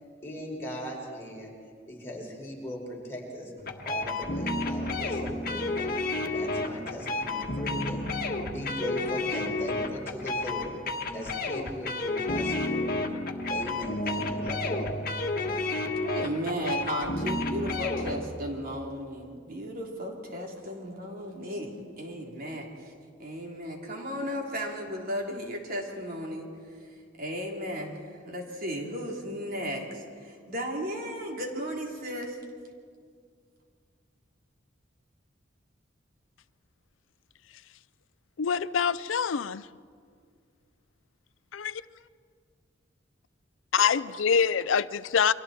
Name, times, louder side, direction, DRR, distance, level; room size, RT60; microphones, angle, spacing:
voice 1, 0.2-1.5 1.9-3.5 3.8-5.9 6.3-10.8 11.1-12.9 13.5-14.9, equal, 15° left, 5.3 m, -39 dB
sound 1, 3.6-18.2, left 2 dB, 50° left, 1.6 m, -31 dB
voice 2, 16.0-22.9 23.2-26.5 27.2-32.4, equal, 50° right, 3.3 m, -35 dB
voice 3, 38.4-39.7 41.5-41.8 43.7-45.3, left 6 dB, 85° left, 0.5 m, -25 dB
30.0 x 24.5 x 4.4 m
head